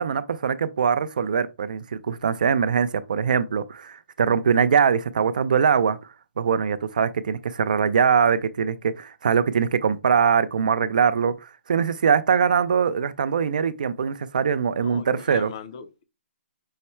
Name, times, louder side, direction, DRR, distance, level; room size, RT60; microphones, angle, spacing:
voice 1, 0.0-6.0 6.4-15.5, right 6 dB, 40° right, 0.3 m, -22 dB
voice 2, 14.8-16.0, left 6 dB, 25° left, 0.4 m, -39 dB
5.6 x 2.1 x 4.2 m
hypercardioid pair, 175°, 7 cm